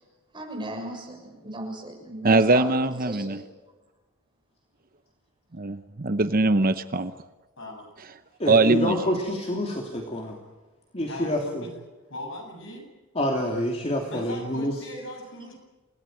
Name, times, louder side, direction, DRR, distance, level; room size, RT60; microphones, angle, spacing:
voice 1, 0.3-2.7 3.0-3.4, right 1 dB, 20° right, 1 dB, 6.9 m, -36 dB
voice 2, 2.2-3.4 5.5-7.1 8.5-8.9, right 3 dB, 40° right, 11 dB, 0.9 m, -21 dB
voice 3, 7.6-7.9 11.0-11.7 12.1-12.8 14.1-15.6, left 1 dB, 60° left, 2 dB, 7.9 m, -38 dB
voice 4, 8.4-10.4 10.9-11.6 13.1-14.7, left 1 dB, 30° left, 0 dB, 3.0 m, -27 dB
29.5 x 18.0 x 9.2 m, 1.2 s
head